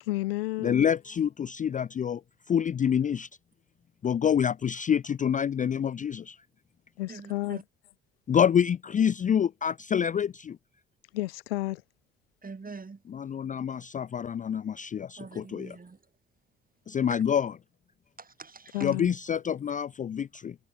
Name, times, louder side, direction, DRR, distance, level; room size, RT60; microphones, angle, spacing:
voice 1, 0.0-0.9 7.0-7.6 11.1-11.8 18.7-19.1, left 19 dB, 85° left, 0.6 m, -31 dB
voice 2, 0.6-2.2 2.5-3.3 4.0-6.4 8.3-10.6 13.1-15.8 16.9-17.5 18.8-20.6, left 8 dB, 25° left, 0.4 m, -27 dB
voice 3, 7.1-7.6 12.4-13.0 15.2-16.0 17.1-17.2 18.2-18.9, right 4 dB, 30° right, 4.5 m, -44 dB
hypercardioid pair, 45°, 29 cm